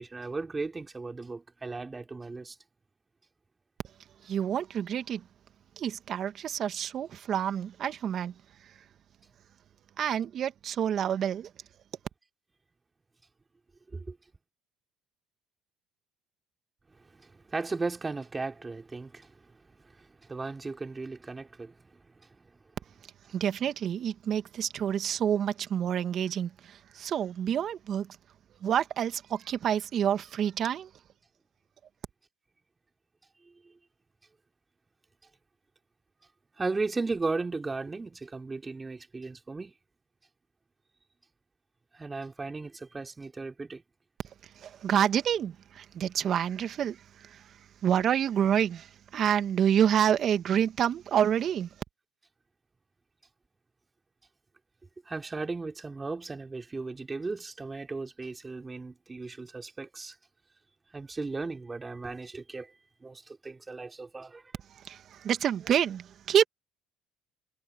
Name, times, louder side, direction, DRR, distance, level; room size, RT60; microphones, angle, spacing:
voice 1, 0.0-2.6 13.9-14.2 17.0-22.0 22.4-22.6 33.4-33.7 36.6-39.7 41.9-43.8 55.0-60.2 60.9-62.7 63.0-64.5, right 3 dB, 20° right, 3.1 m, -36 dB
voice 2, 4.2-5.2 5.8-8.3 10.0-11.5 23.3-28.1 28.6-30.9 44.6-47.4 47.8-51.7 64.9-66.4, right 9 dB, 50° right, 1.8 m, -28 dB
supercardioid pair, 85°, 0 cm